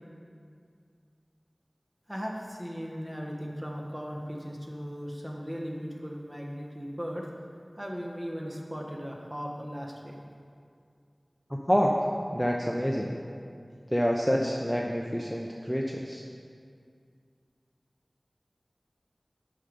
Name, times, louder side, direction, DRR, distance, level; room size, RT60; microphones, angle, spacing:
voice 1, 2.1-7.3 7.8-10.2, equal, 20° right, -1 dB, 1.3 m, -37 dB
voice 2, 11.5-12.1 12.3-13.1 13.9-16.2, equal, 5° left, -1 dB, 0.6 m, -27 dB
8.5 x 5.6 x 5.2 m, 2.3 s
wide cardioid pair, 45°, 0 cm